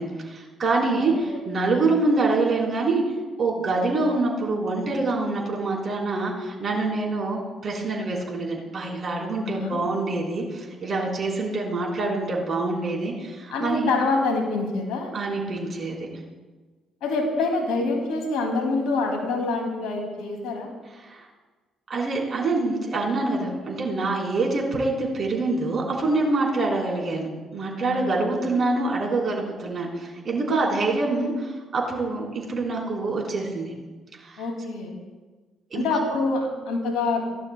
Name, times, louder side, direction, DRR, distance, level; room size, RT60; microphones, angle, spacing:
voice 1, 0.0-3.0 3.4-13.9 15.1-16.1 21.0-21.3 21.9-33.7 34.1-34.5 35.7-36.0, right 3 dB, 50° right, -2 dB, 4.1 m, -25 dB
voice 2, 0.9-1.4 9.4-9.8 13.5-15.1 17.0-20.7 27.8-28.0 34.4-34.9 35.7-36.4 36.7-37.2, left 3 dB, 75° left, 2 dB, 2.5 m, -26 dB
19.5 x 12.0 x 2.3 m, 1.3 s
hypercardioid pair, 50°, 0 cm